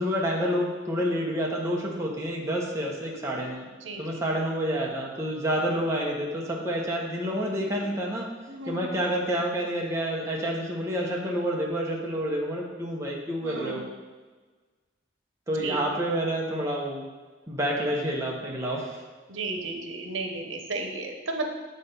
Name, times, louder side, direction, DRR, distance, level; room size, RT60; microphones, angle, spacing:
voice 1, 0.0-3.7 4.0-8.3 8.7-13.8 15.5-17.0 17.5-18.9, equal, 15° right, -2 dB, 1.0 m, -28 dB
voice 2, 3.8-4.2 8.5-8.9 13.4-13.8 15.6-15.8 19.3-21.5, right 2 dB, 90° right, 4 dB, 0.9 m, -34 dB
7.7 x 4.3 x 5.3 m, 1.4 s
head